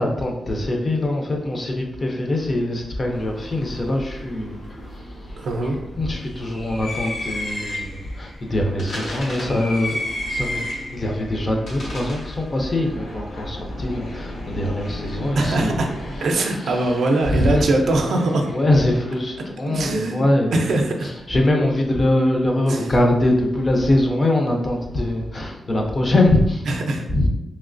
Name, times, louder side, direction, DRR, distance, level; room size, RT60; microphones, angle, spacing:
voice 1, 0.0-10.0 10.3-17.0 17.3-17.8 18.5-26.7 27.1-27.3, left 1 dB, 25° left, 1 dB, 0.4 m, -23 dB
sound 1, 3.1-16.2, left 1 dB, 85° left, 1.1 m, -33 dB
voice 2, 5.4-5.8 15.3-15.9 16.2-18.5 19.7-20.2 20.5-21.1 22.7-22.8 26.7-27.1, right 2 dB, 65° right, 3 dB, 0.4 m, -21 dB
Fixed-wing aircraft airplane, 9.5-20.6, left 1 dB, 65° left, 0.7 m, -39 dB
3.1 x 2.9 x 2.5 m, 0.86 s
wide cardioid pair, 180°, 0 cm